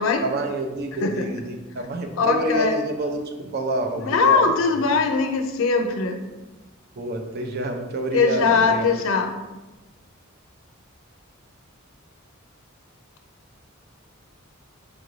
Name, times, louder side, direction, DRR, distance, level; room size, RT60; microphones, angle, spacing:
voice 1, 0.2-4.5 7.0-8.9, right 2 dB, 50° right, 4 dB, 0.5 m, -28 dB
voice 2, 2.2-2.8 4.0-6.3 8.1-9.3, left 4 dB, 70° left, 6 dB, 0.5 m, -21 dB
5.1 x 2.5 x 3.1 m, 1.1 s
head